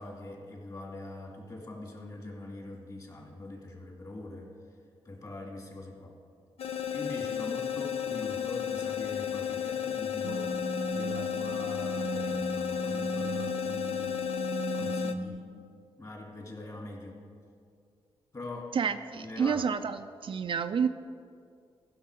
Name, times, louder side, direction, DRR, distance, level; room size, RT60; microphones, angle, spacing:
voice 1, 0.0-4.5 5.0-6.2 6.9-10.6 10.9-14.2 14.7-15.5 16.0-17.2 18.3-18.8 19.2-19.6, left 2 dB, 35° left, 0 dB, 2.4 m, -42 dB
sound 1, 6.6-15.1, left 9 dB, 75° left, 0.5 m, -33 dB
sound 2, 10.2-15.3, right 4 dB, 85° right, 0.9 m, -37 dB
voice 2, 18.7-20.9, right 6 dB, 55° right, 9 dB, 0.5 m, -29 dB
15.0 x 6.0 x 4.9 m, 2.3 s
cardioid pair, 75°, 11 cm